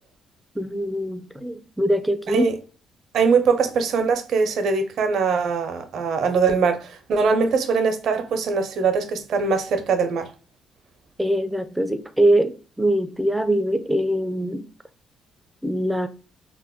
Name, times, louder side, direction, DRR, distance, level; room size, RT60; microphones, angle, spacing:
voice 1, 0.6-2.5 11.2-14.7 15.6-16.1, right 1 dB, 5° right, 0.4 m, -23 dB
voice 2, 2.3-2.6 3.1-10.3, right 5 dB, 70° right, 0.5 m, -22 dB
2.3 x 2.0 x 3.4 m
supercardioid pair, 70°, 0 cm